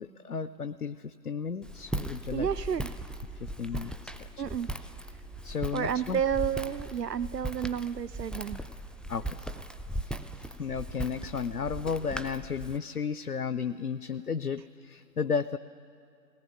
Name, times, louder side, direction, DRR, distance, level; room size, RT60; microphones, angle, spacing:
voice 1, 0.0-2.5 3.3-4.5 5.4-6.2 9.1-9.4 10.0-15.6, left 6 dB, 65° left, 13 dB, 0.5 m, -34 dB
Walk footsteps, 1.6-12.8, right 1 dB, ahead, 0.4 m, -38 dB
voice 2, 2.3-2.9 4.4-4.7 5.7-8.6, right 8 dB, 75° right, 17 dB, 0.5 m, -31 dB
20.0 x 18.5 x 9.2 m, 2.5 s
figure-of-eight pair, 165°, 50 cm